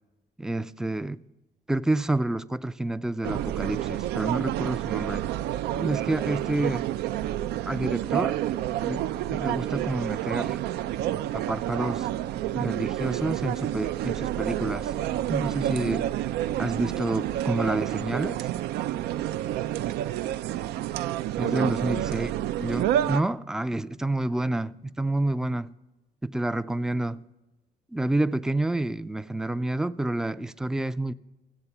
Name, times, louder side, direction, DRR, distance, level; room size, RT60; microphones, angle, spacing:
voice 1, 0.4-1.2 1.7-5.3 5.7-6.8 7.7-8.4 8.8-10.6 11.3-12.1 12.5-14.9 15.3-16.1 16.6-18.5 21.4-22.3 22.6-25.7 26.2-27.2 27.9-31.1, right 2 dB, 5° right, 0.3 m, -29 dB
sound 1, 3.2-23.2, right 12 dB, 75° right, 0.4 m, -29 dB
15.0 x 8.0 x 7.0 m
cardioid pair, 110°, 17 cm